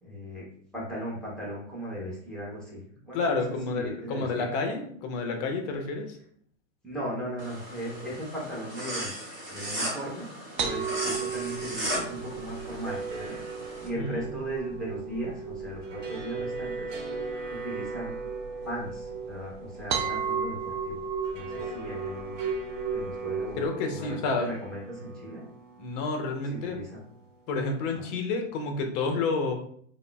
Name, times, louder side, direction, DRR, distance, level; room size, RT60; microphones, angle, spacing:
voice 1, 0.0-0.4 0.7-3.4 3.7-4.4 6.8-9.1 9.5-10.3 10.6-13.4 13.8-17.0 17.5-18.1 18.6-21.1 21.3-22.4 22.9-23.6 23.9-25.4 26.7-27.0 28.0-28.1, equal, ahead, -6 dB, 0.8 m, -37 dB
voice 2, 3.1-6.2 13.9-14.4 23.6-24.5 25.8-26.8 27.5-29.5, left 3 dB, 35° left, 3 dB, 0.5 m, -30 dB
sound 1, 7.4-13.9, right 1 dB, 25° right, 1.1 m, -36 dB
sound 2, 10.6-23.7, right 6 dB, 40° right, 0.4 m, -35 dB
sound 3, 12.4-27.6, right 3 dB, 75° right, 0.9 m, -41 dB
3.5 x 2.0 x 2.2 m, 0.63 s
hypercardioid pair, 130°, 37 cm